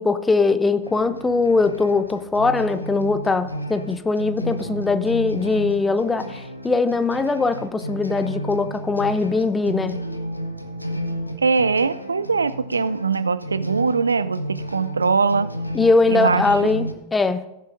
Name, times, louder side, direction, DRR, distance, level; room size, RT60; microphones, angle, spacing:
voice 1, 0.0-10.0 15.7-17.5, left 3 dB, 10° left, 12 dB, 0.6 m, -21 dB
sound 1, 0.8-16.9, equal, 85° left, 0.9 m, -32 dB
voice 2, 11.4-15.6 16.1-16.5, right 4 dB, 75° right, 16 dB, 0.3 m, -21 dB
15.0 x 9.6 x 2.6 m, 0.91 s
figure-of-eight pair, 90°, 0 cm